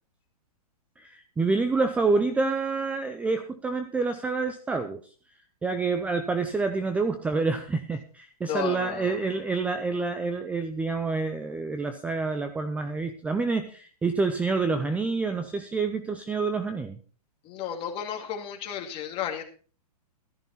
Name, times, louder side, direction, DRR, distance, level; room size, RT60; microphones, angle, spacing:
voice 1, 1.0-5.0 5.6-17.0, right 4 dB, 5° right, 9 dB, 0.5 m, -27 dB
voice 2, 8.4-9.2 17.4-19.4, left 9 dB, 30° left, 3 dB, 2.3 m, -33 dB
13.5 x 10.5 x 4.2 m, 0.39 s
hypercardioid pair, 145°, 20 cm